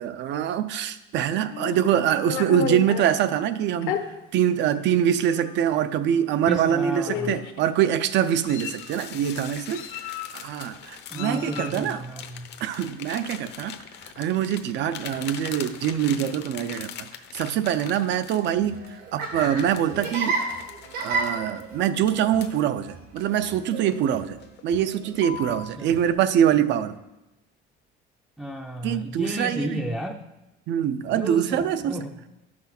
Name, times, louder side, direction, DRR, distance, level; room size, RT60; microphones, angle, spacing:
voice 1, 0.0-4.0 4.3-12.0 12.6-13.8 14.2-18.8 19.1-20.4 21.0-24.4 24.6-27.0 28.8-29.8 30.7-32.0, right 9 dB, 60° right, 12 dB, 0.6 m, -24 dB
Meow, 1.5-3.2 3.8-4.0 4.9-5.0 5.4-5.6 6.6-6.7 7.1-7.6 8.2-8.9 9.7-10.5 11.1-11.8, left 9 dB, 80° left, 1.1 m, -32 dB
voice 2, 6.5-7.3 11.1-12.5 25.5-25.9 28.4-30.2 31.1-32.1, right 1 dB, 5° right, 0 dB, 0.5 m, -32 dB
sound 1, 8.1-18.9 19.4-22.6 23.2-24.1 24.4-24.7 25.1-25.7, left 9 dB, 55° left, 0.8 m, -42 dB
Laughter, 18.6-26.1, right 3 dB, 85° right, 3.2 m, -33 dB
11.5 x 6.0 x 5.9 m, 0.97 s
cardioid pair, 155°, 21 cm